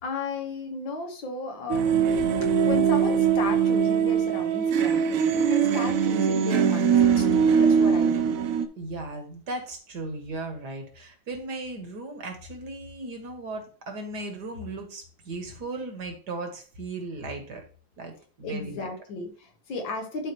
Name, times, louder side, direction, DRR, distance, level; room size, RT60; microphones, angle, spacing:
voice 1, 0.0-2.2 2.6-8.4 18.4-20.3, left 3 dB, 70° left, 4 dB, 2.0 m, -35 dB
sound 1, 1.7-8.7, right 7 dB, 80° right, 0.7 m, -22 dB
voice 2, 8.8-17.6 18.0-18.9, right 2 dB, 55° right, 4 dB, 1.8 m, -36 dB
11.0 x 4.3 x 3.0 m, 0.40 s
omnidirectional pair, 2.2 m